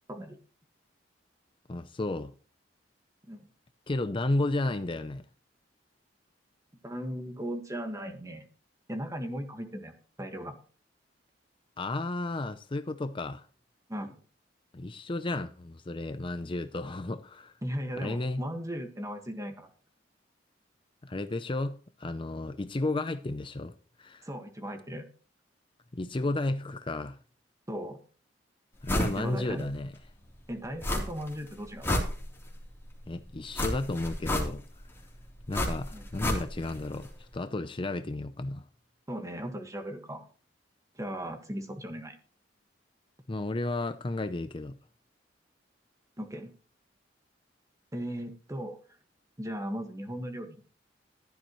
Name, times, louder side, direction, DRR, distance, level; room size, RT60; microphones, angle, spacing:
voice 1, 1.7-2.3 3.9-5.2 11.8-13.5 14.7-17.5 18.0-18.4 21.0-23.7 24.0-24.3 25.9-27.2 28.8-29.9 33.1-34.6 35.5-38.7 43.3-44.8, left 2 dB, 30° left, 0.6 m, -33 dB
voice 2, 6.8-8.5 8.9-9.9 10.2-10.6 13.9-14.2 17.6-19.7 24.2-25.1 27.7-28.0 29.1-29.7 30.5-32.0 35.9-36.1 39.1-40.2 40.9-42.2 46.2-46.5 47.9-48.8 49.4-50.6, equal, 20° right, 1.6 m, -37 dB
sound 1, 28.9-29.2 29.6-29.7 30.8-31.3 31.6-32.6 33.5-34.8 35.5-36.8 37.0-37.1, left 1 dB, 15° left, 3.4 m, -30 dB
15.0 x 11.5 x 3.1 m
head